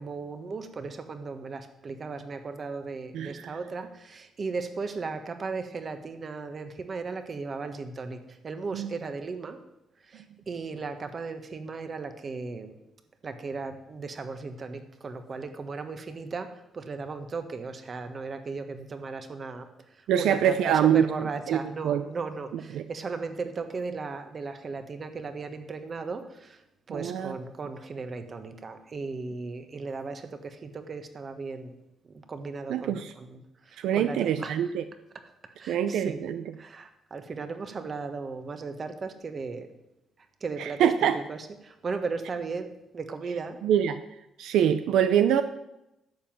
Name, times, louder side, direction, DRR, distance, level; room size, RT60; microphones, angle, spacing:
voice 1, 0.0-9.6 10.0-12.8 13.2-19.7 20.0-26.6 26.9-31.7 32.0-34.6 35.6-36.2 36.6-39.7 40.4-43.6, right 4 dB, 40° right, 8 dB, 1.5 m, -36 dB
voice 2, 20.1-21.0 21.5-21.6 21.8-22.0 22.7-22.8 26.9-27.3 32.7-33.1 33.8-34.8 35.7-36.4 40.8-41.2 43.6-44.0 44.4-45.4, right 9 dB, 85° right, 10 dB, 0.6 m, -24 dB
11.0 x 7.2 x 7.6 m, 0.90 s
cardioid pair, 90°, 0 cm